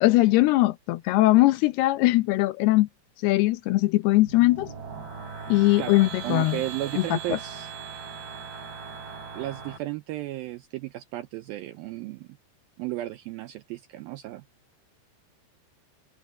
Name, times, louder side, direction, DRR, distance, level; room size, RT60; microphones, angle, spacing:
voice 1, 0.0-2.9 3.2-4.7 5.5-6.6 7.0-7.4, left 18 dB, 80° left, 2.6 m, -21 dB
sound 1, 4.1-9.8, right 5 dB, 70° right, 9.3 m, -39 dB
voice 2, 6.2-7.7 9.3-12.3 12.8-14.4, right 16 dB, 85° right, 2.1 m, -34 dB
open air
omnidirectional pair, 4.9 m